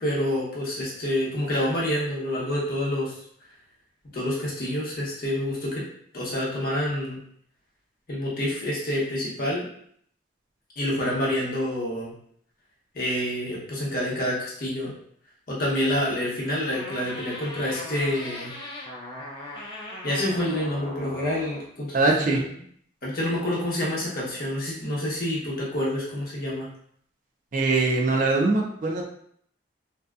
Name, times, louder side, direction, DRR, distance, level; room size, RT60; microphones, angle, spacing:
voice 1, 0.0-3.1 4.1-5.8 6.1-7.2 8.1-9.6 10.8-12.1 12.9-14.9 15.5-18.5 20.0-22.4 23.0-26.7, left 1 dB, 50° left, -5 dB, 0.8 m, -27 dB
sound 1, 16.7-21.7, left 1 dB, 25° left, 0.4 m, -39 dB
voice 2, 21.9-22.4 27.5-29.1, right 3 dB, 45° right, 0 dB, 0.4 m, -22 dB
2.7 x 2.2 x 2.3 m, 0.64 s
head